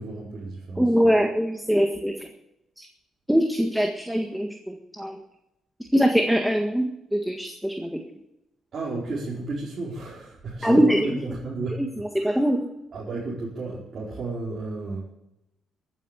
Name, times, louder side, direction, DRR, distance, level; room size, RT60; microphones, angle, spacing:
voice 1, 0.0-0.9 8.7-11.9 12.2-12.4 12.9-15.0, right 3 dB, 50° right, -6 dB, 4.8 m, -33 dB
voice 2, 0.8-2.3 2.8-2.9 3.3-5.2 5.9-8.0 10.6-11.0 12.2-12.6, equal, ahead, 3 dB, 1.7 m, -22 dB
14.5 x 9.5 x 8.3 m, 0.87 s
cardioid pair, 90°, 0 cm